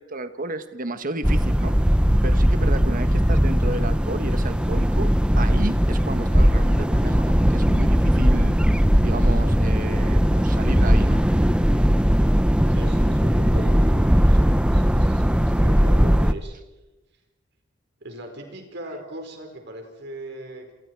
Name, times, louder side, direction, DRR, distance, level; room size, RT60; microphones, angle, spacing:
voice 1, 0.0-1.7 2.2-5.1 5.4-8.6 9.0-11.2 11.8-11.9, right 2 dB, 45° right, 10 dB, 1.4 m, -32 dB
sound 1, 1.2-16.3, equal, 5° right, 0.8 m, -19 dB
voice 2, 12.7-16.5 18.0-20.7, right 1 dB, 60° right, 4 dB, 4.9 m, -39 dB
28.5 x 27.5 x 4.8 m, 1.1 s
head